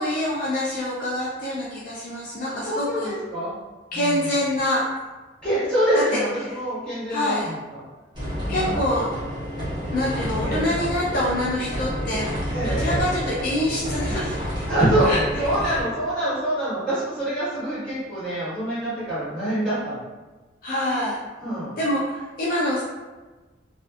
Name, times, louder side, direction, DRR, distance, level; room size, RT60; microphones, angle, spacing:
voice 1, 0.0-3.2 3.9-4.8 6.1-6.2 7.1-7.5 8.5-9.1 9.9-12.3 12.7-14.7 15.1-15.2 15.6-15.8 20.6-21.2 21.8-22.8, left 1 dB, 50° left, -5 dB, 0.4 m, -25 dB
voice 2, 2.4-3.5 3.9-4.3 5.4-7.8 8.4-8.9 10.4-10.7 12.5-13.1 14.7-20.0 21.4-21.8, right 1 dB, 5° left, -15 dB, 1.5 m, -25 dB
sound 1, 8.1-15.8, equal, 25° right, 0.9 m, -29 dB
2.5 x 2.3 x 2.3 m, 1.2 s
head